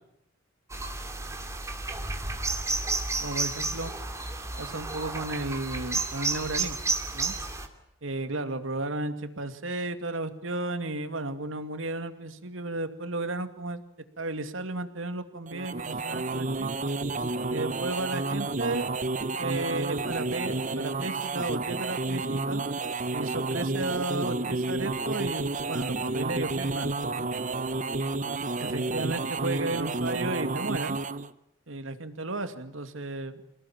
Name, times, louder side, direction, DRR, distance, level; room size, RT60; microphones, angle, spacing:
sound 1, 0.7-7.7, right 3 dB, 15° right, 2.8 m, -32 dB
voice 1, 3.2-3.9 4.6-6.8 7.1-7.4 8.0-13.8 14.2-16.7 17.5-18.9 19.4-22.6 23.1-27.5 28.6-31.0 31.7-33.4, right 2 dB, 85° right, 9 dB, 2.5 m, -34 dB
sound 2, 15.5-31.3, right 3 dB, 40° right, 1.0 m, -30 dB
28.5 x 18.5 x 9.0 m, 0.85 s
head